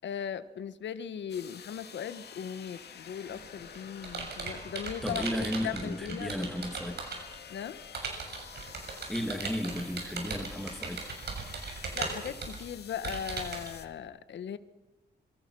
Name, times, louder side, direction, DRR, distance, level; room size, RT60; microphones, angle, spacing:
voice 1, 0.0-5.2 5.6-6.5 7.5-7.8 11.9-14.6, left 8 dB, 80° left, 13 dB, 1.3 m, -38 dB
sound 1, 1.3-13.9, left 7 dB, 65° left, 2.3 m, -49 dB
Computer keyboard, 3.3-7.4 7.9-13.7, right 4 dB, 65° right, 6.9 m, -38 dB
voice 2, 5.0-7.1 9.1-11.1, left 1 dB, ahead, 6 dB, 2.0 m, -34 dB
26.5 x 24.5 x 6.2 m, 1.0 s
wide cardioid pair, 155°, 18 cm